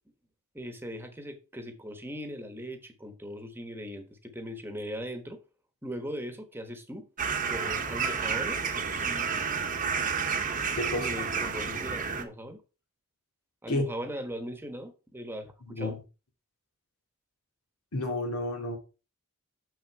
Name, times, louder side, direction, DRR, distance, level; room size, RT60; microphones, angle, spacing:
voice 1, 0.5-5.4 5.8-7.1 7.5-9.3 10.9-12.6 13.6-16.0, equal, 10° right, 1.2 m, -39 dB
sound 1, 7.2-12.2, right 5 dB, 40° right, 1.1 m, -30 dB
voice 2, 10.7-11.1 13.7-13.9 15.6-16.0 17.9-18.8, left 1 dB, 85° left, 2.3 m, -31 dB
6.7 x 6.3 x 4.6 m
head